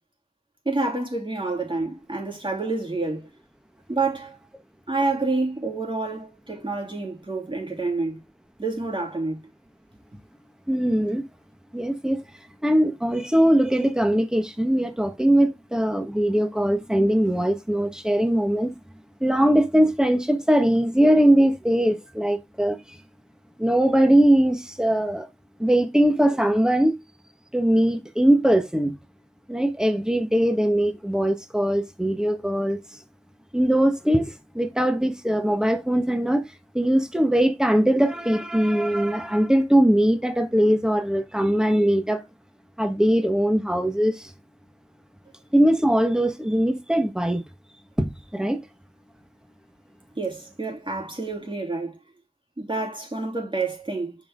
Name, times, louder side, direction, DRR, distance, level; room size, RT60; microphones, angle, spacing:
voice 1, 0.6-3.3 3.9-4.4 4.9-8.2 8.6-9.4 50.1-52.0 52.6-54.2, right 3 dB, 45° right, 3.2 m, -28 dB
voice 2, 10.7-11.2 11.7-12.2 12.6-18.7 19.2-22.8 23.6-25.3 25.6-26.9 27.5-29.0 29.5-32.8 33.5-36.4 36.7-42.2 42.8-44.3 45.5-47.4 48.0-48.6, right 1 dB, 5° right, 1.3 m, -21 dB
6.6 x 5.4 x 3.7 m
wide cardioid pair, 45°, 12 cm